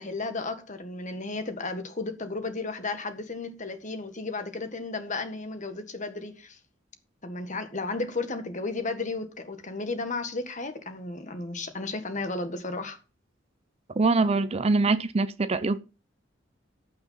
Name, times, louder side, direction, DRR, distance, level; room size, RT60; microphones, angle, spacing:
voice 1, 0.0-6.6 7.2-13.0, left 3 dB, 40° left, 1.7 m, -33 dB
voice 2, 14.0-15.8, right 3 dB, 30° right, 0.5 m, -23 dB
15.5 x 5.8 x 5.5 m
head